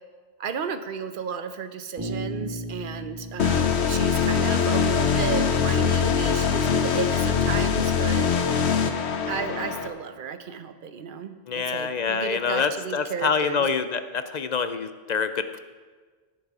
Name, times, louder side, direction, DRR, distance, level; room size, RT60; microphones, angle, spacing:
voice 1, 0.4-8.3 9.3-13.7, right 6 dB, 55° right, 9 dB, 0.9 m, -33 dB
Bass guitar, 2.0-5.9, right 1 dB, 15° right, 3.4 m, -37 dB
sound 1, 3.4-9.9, left 7 dB, 90° left, 1.1 m, -23 dB
voice 2, 11.5-15.6, left 5 dB, 50° left, 11 dB, 0.6 m, -26 dB
16.5 x 6.5 x 4.8 m, 1.4 s
omnidirectional pair, 1.1 m